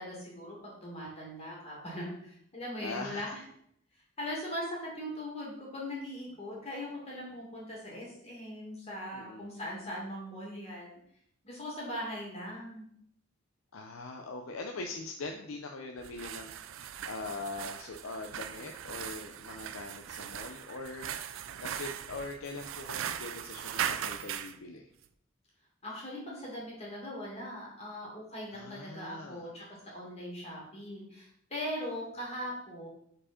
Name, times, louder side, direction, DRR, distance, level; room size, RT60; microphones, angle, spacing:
voice 1, 0.0-3.4 4.2-11.0 11.4-12.9 25.8-29.6 29.9-32.9, equal, 35° left, -4 dB, 2.2 m, -40 dB
voice 2, 2.8-3.4 9.1-9.5 13.7-21.3 21.6-24.9 28.5-29.5, left 3 dB, 80° left, 4 dB, 0.5 m, -42 dB
sound 1, 16.0-24.6, right 9 dB, 70° right, 0.4 m, -39 dB
5.1 x 4.7 x 4.3 m, 0.70 s
head